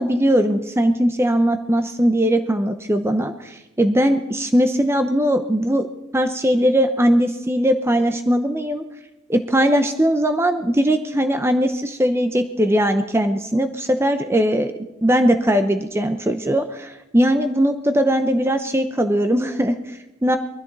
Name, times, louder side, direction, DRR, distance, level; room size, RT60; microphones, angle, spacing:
voice 1, 0.0-5.9 6.1-8.8 9.3-14.7 15.0-20.4, equal, 10° right, 7 dB, 0.7 m, -19 dB
23.5 x 13.5 x 4.0 m, 0.96 s
head